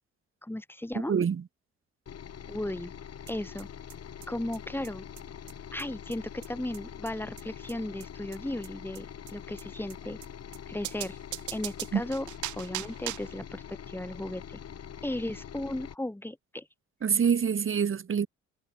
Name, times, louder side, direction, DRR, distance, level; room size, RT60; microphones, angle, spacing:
voice 1, 0.4-1.1 2.5-2.9 3.3-3.7 4.3-5.1 5.7-10.2 10.7-11.2 11.5-12.3 12.6-14.6 15.0-16.7, left 1 dB, 5° left, 3.6 m, -35 dB
voice 2, 1.1-1.4 11.9-12.0 17.0-18.3, right 7 dB, 45° right, 2.0 m, -25 dB
sound 1, 2.1-16.0, left 8 dB, 55° left, 3.2 m, -44 dB
sound 2, 3.3-3.4 3.6-3.7 3.9-4.0 4.2-4.3 4.5-4.6 4.8-4.9 5.2-5.3 5.5-5.6 5.8-5.9 6.1-6.2 6.4-6.5 6.7-6.8 7.1-7.2 7.4-7.5 7.7-7.8 8.0-8.1 8.3-8.4 8.6-8.7 8.9-9.0 9.3-9.4 9.6-9.7 9.9-10.0 10.2-10.3 10.5-10.6 10.8-13.4, right 17 dB, 90° right, 3.7 m, -39 dB
cardioid pair, 70°, 29 cm